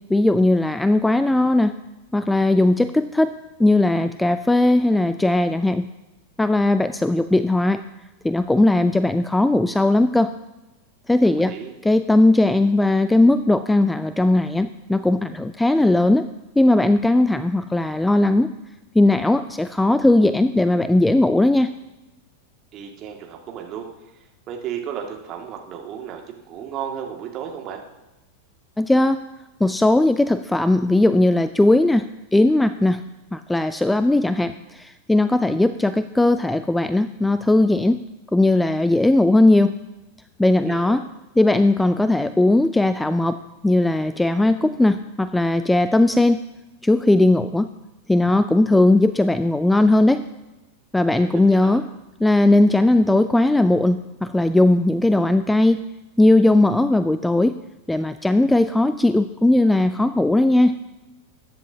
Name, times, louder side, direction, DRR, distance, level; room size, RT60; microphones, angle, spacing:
voice 1, 0.1-1.7 2.1-3.3 3.6-5.9 6.4-7.8 8.2-10.3 11.1-11.5 11.8-16.3 16.6-18.5 18.9-21.7 28.8-29.2 29.6-33.0 33.3-38.0 38.3-39.7 40.4-41.0 41.4-43.4 43.6-46.4 46.8-47.7 48.1-50.3 50.9-51.8 52.2-55.8 56.2-57.5 57.9-60.8, left 2 dB, 5° left, 12 dB, 0.4 m, -18 dB
voice 2, 11.2-11.7 22.7-23.9 24.5-27.8 40.6-41.0 51.1-51.8, right 8 dB, 35° right, 1 dB, 2.0 m, -34 dB
21.5 x 10.0 x 2.8 m, 1.0 s
figure-of-eight pair, 90°, 0 cm